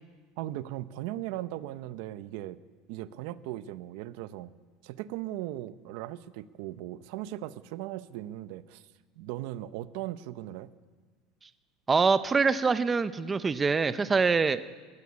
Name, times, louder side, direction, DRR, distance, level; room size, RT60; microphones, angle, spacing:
voice 1, 0.4-2.6 2.9-4.5 4.8-8.8 9.2-10.7, right 14 dB, 65° right, 14 dB, 0.8 m, -38 dB
voice 2, 11.9-14.6, right 4 dB, 15° right, 12 dB, 0.6 m, -24 dB
21.5 x 16.5 x 9.6 m, 1.5 s
cardioid pair, 160°, 0 cm